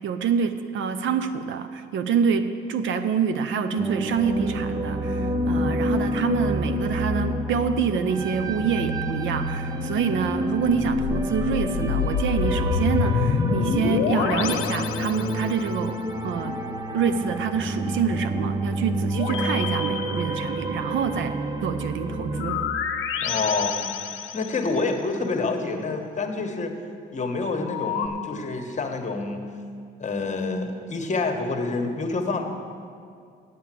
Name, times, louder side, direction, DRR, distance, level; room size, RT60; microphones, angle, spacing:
voice 1, 0.0-16.0 16.2-16.6 16.9-22.6, right 6 dB, 75° right, 9 dB, 0.7 m, -26 dB
sound 1, 3.8-22.7, right 1 dB, 20° right, 0.8 m, -28 dB
sound 2, 10.8-15.8 19.1-20.9 22.3-24.9 27.6-28.1, left 7 dB, 85° left, 0.8 m, -28 dB
voice 2, 23.2-23.8 24.3-26.7 27.1-29.4 30.0-32.4, left 3 dB, 35° left, 4 dB, 1.3 m, -27 dB
8.5 x 8.4 x 7.5 m, 2.3 s
cardioid pair, 90°, 20 cm